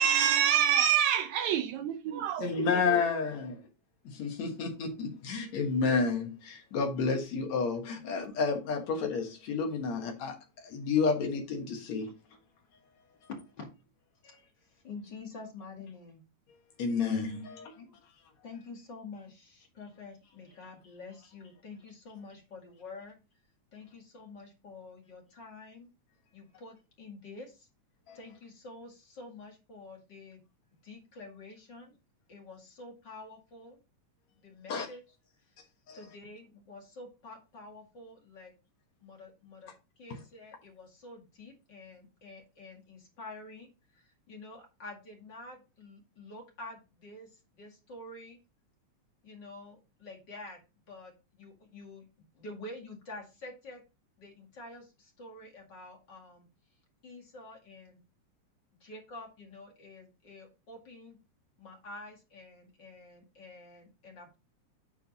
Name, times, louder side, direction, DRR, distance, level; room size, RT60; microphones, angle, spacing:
voice 1, 0.0-2.6 2.9-3.0, right 9 dB, 75° right, 1.9 m, -26 dB
voice 2, 2.4-3.6 4.1-10.4 10.6-12.1 14.2-14.4 16.8-17.7 28.1-28.2 34.7-34.9 35.9-36.0, left 5 dB, 65° left, 2.6 m, -30 dB
voice 3, 13.3-13.7 14.6-16.2 17.8-17.9 18.4-23.2 23.7-25.9 26.3-27.7 28.1-30.4 30.8-32.0 32.3-33.8 34.4-35.0 35.9-38.5 39.0-39.7 40.0-48.4 49.2-50.6 50.9-53.8 54.2-56.5 57.0-58.0 58.8-61.2 61.6-64.4, left 2 dB, 40° left, 2.5 m, -48 dB
9.2 x 4.5 x 4.0 m
omnidirectional pair, 3.5 m